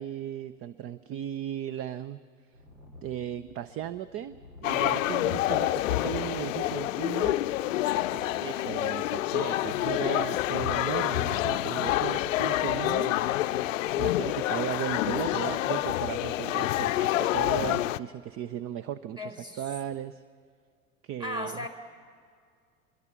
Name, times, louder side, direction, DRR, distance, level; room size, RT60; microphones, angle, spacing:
voice 1, 0.0-2.2 3.0-7.4 8.1-13.3 14.0-20.2 21.0-21.6, right 10 dB, 30° right, 15 dB, 0.6 m, -36 dB
sound 1, 2.5-15.3, left 1 dB, 75° right, 4.2 m, -53 dB
sound 2, 4.6-18.0, left 14 dB, 65° left, 0.6 m, -28 dB
voice 2, 19.2-19.6 21.2-21.7, left 2 dB, 10° right, 5 dB, 2.7 m, -36 dB
26.0 x 22.5 x 5.9 m, 2.1 s
figure-of-eight pair, 75°, 42 cm